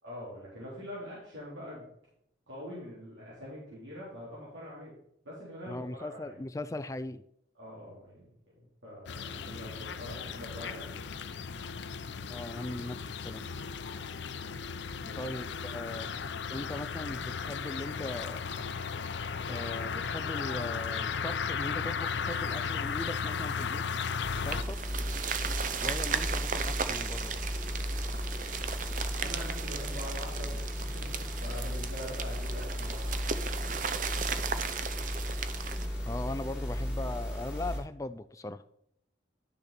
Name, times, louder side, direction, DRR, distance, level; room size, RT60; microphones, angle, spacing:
voice 1, 0.0-1.9 2.5-4.9 5.2-6.5 7.5-11.4 15.0-15.4 29.2-33.4, left 1 dB, 85° right, -8 dB, 3.9 m, -44 dB
voice 2, 5.7-7.2 12.3-13.5 15.2-16.1 16.5-18.5 19.5-23.8 24.4-24.8 25.8-27.4 36.1-38.7, left 2 dB, 15° left, 12 dB, 0.3 m, -39 dB
sound 1, 9.1-24.6, left 6 dB, 70° left, 0.6 m, -35 dB
sound 2, 24.2-37.8, equal, 5° right, 3.0 m, -35 dB
sound 3, 24.4-35.9, right 6 dB, 45° right, 0.6 m, -36 dB
12.0 x 6.7 x 4.3 m, 0.73 s
head